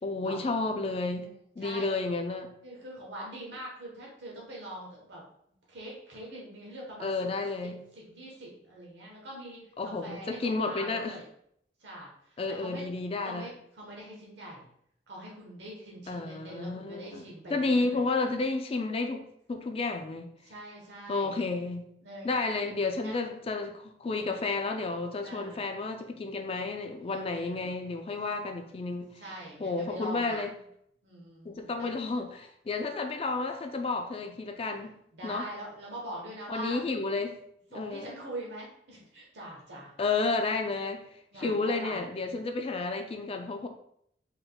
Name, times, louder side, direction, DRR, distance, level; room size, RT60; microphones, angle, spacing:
voice 1, 0.0-1.3 1.6-2.5 7.0-7.8 9.8-11.2 12.4-13.5 16.1-17.2 17.5-20.3 21.1-21.8 22.2-29.1 29.6-30.5 31.4-34.9 35.2-35.5 36.5-37.3 37.7-38.1 40.0-41.0 41.4-43.7, left 3 dB, 35° left, 5 dB, 0.4 m, -31 dB
voice 2, 1.6-2.1 2.6-5.3 5.7-7.2 7.6-11.2 11.8-12.9 13.2-14.7 15.1-18.0 20.4-21.3 22.0-22.3 23.0-23.2 25.2-25.7 27.0-27.7 29.2-30.5 31.0-31.9 35.1-36.8 37.7-39.9 41.3-42.1, right 1 dB, 80° right, -3 dB, 1.1 m, -43 dB
4.4 x 3.6 x 2.2 m, 0.71 s
head